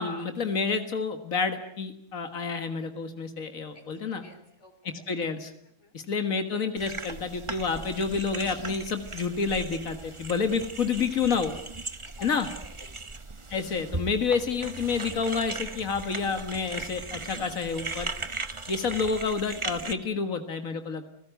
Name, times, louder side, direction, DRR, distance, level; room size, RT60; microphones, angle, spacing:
voice 1, 0.0-4.2 5.1-5.5 5.9-11.5 12.2-12.5 13.5-18.1 18.7-21.1, left 5 dB, 85° left, 7 dB, 2.1 m, -29 dB
voice 2, 4.1-5.1 5.6-6.0 12.0-13.1, left 4 dB, 60° left, 8 dB, 4.0 m, -49 dB
sound 1, 6.8-19.9, right 3 dB, 25° right, 1.1 m, -38 dB
30.0 x 16.0 x 9.2 m, 0.74 s
omnidirectional pair, 1.4 m